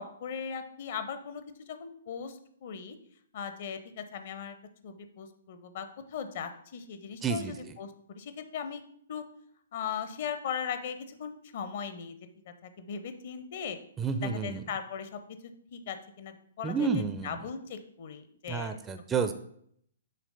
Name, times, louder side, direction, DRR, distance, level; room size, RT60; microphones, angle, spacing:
voice 1, 0.0-3.0 3.3-4.6 4.8-8.8 9.1-9.2 9.7-12.2 12.4-13.8 14.2-18.8, left 7 dB, 45° left, 9 dB, 0.7 m, -39 dB
voice 2, 7.2-7.5 14.0-14.6 16.6-17.4 18.5-19.3, right 5 dB, 15° right, 8 dB, 0.4 m, -30 dB
6.7 x 3.0 x 5.5 m, 0.65 s
figure-of-eight pair, 120°, 0 cm